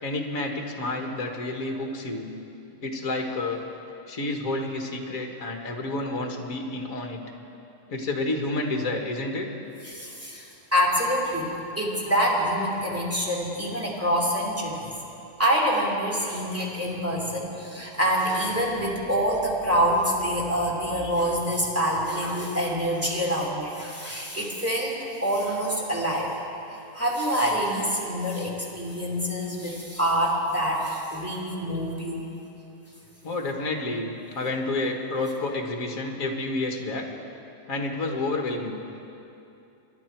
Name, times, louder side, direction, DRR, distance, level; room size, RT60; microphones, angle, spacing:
voice 1, 0.0-2.3 2.8-3.6 4.1-7.2 7.9-9.5 33.2-37.1 37.7-38.8, left 2 dB, 60° left, 2 dB, 1.9 m, -29 dB
voice 2, 9.8-11.5 11.8-14.9 15.4-26.3 26.9-32.3, equal, 10° right, -4 dB, 2.6 m, -26 dB
25.0 x 11.0 x 4.5 m, 2.8 s
omnidirectional pair, 1.7 m